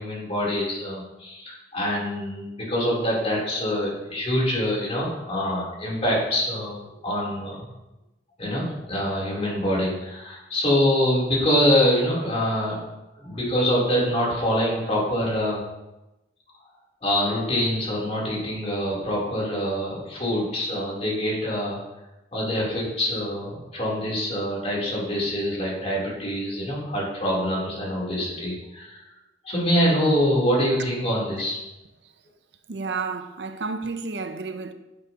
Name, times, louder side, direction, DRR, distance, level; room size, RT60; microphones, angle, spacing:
voice 1, 0.0-7.7 8.4-12.8 13.2-15.6 17.0-21.8 22.3-29.0 29.4-31.6, equal, 35° left, 3.5 m, -25 dB
voice 2, 32.7-34.7, right 4 dB, 70° right, 0.7 m, -31 dB
10.5 x 8.2 x 3.0 m
head